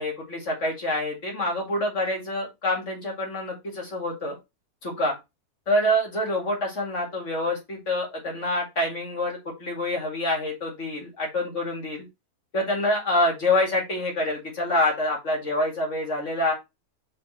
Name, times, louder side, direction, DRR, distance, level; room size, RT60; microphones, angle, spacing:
voice 1, 0.0-4.3 4.8-5.1 5.7-12.1 12.5-16.5, left 1 dB, 50° left, 0 dB, 2.4 m, -26 dB
5.1 x 4.4 x 4.2 m, 0.22 s
omnidirectional pair, 1.7 m